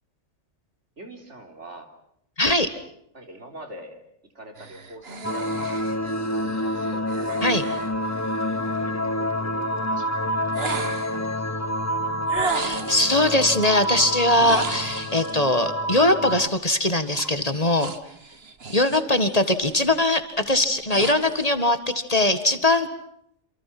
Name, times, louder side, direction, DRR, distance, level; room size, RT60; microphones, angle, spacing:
voice 1, 1.0-1.9 3.1-4.0 4.3-8.3 8.7-10.4 10.6-11.7 18.3-18.4, equal, 70° right, 4 dB, 4.1 m, -44 dB
voice 2, 2.4-2.7 7.4-7.6 12.5-17.9 18.7-22.9, left 1 dB, 30° left, 9 dB, 1.9 m, -21 dB
sound 1, 4.6-8.8 10.5-11.3 12.3-13.1 14.3-15.4 17.1-19.2 19.5-19.9 20.4-21.5, right 4 dB, 55° right, 1.8 m, -35 dB
sound 2, 5.2-16.5, equal, 15° left, 1.0 m, -28 dB
28.0 x 28.0 x 6.1 m, 0.73 s
omnidirectional pair, 1.2 m